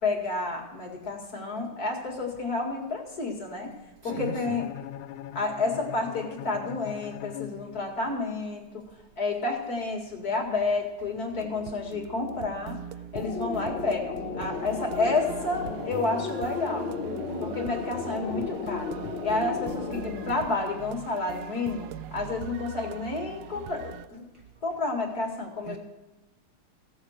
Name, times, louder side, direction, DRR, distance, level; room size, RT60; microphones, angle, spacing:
voice 1, 0.0-3.7 4.0-4.7 5.3-8.8 9.2-12.8 13.1-16.9 17.4-18.9 19.2-24.3 24.6-25.8, left 3 dB, 45° left, 1 dB, 2.4 m, -30 dB
voice 2, 4.0-4.6 25.7-25.8, right 6 dB, 65° right, 5 dB, 1.1 m, -37 dB
Bowed string instrument, 4.1-8.2, left 11 dB, 85° left, 1.5 m, -41 dB
sound 1, 11.3-24.1, right 10 dB, 85° right, 1.5 m, -41 dB
sound 2, 13.2-20.3, left 5 dB, 65° left, 1.7 m, -34 dB
16.0 x 7.2 x 6.4 m, 1.1 s
omnidirectional pair, 2.3 m